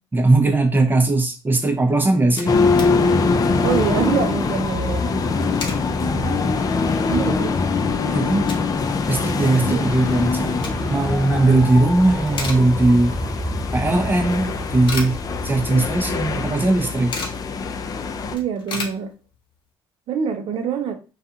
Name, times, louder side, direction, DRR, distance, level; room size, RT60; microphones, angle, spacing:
voice 1, 0.1-2.6 8.0-8.5 9.1-13.2 13.7-15.2 15.4-17.1, right 2 dB, 20° right, 0.6 m, -19 dB
sound 1, 1.8-1.9 2.0-3.0 3.3-3.4 3.7-4.0 5.2-5.9 6.4-6.5 7.0-7.1 7.4-8.8 9.1-9.2 10.2-11.1 11.5-11.8 12.1-13.2 13.5-13.6 14.3-15.8 16.1-16.2 16.4-17.5 17.9-18.0 18.2-19.6, left 3 dB, 55° left, 0.8 m, -34 dB
sound 2, 2.5-18.4, left 4 dB, 40° left, 0.4 m, -23 dB
voice 2, 3.6-5.2 7.1-7.6 9.6-9.9 18.3-19.1 20.1-20.9, right 7 dB, 65° right, 0.6 m, -25 dB
sound 3, 9.8-16.5, equal, 5° left, 1.2 m, -31 dB
2.3 x 2.3 x 2.7 m
cardioid pair, 90°, 10 cm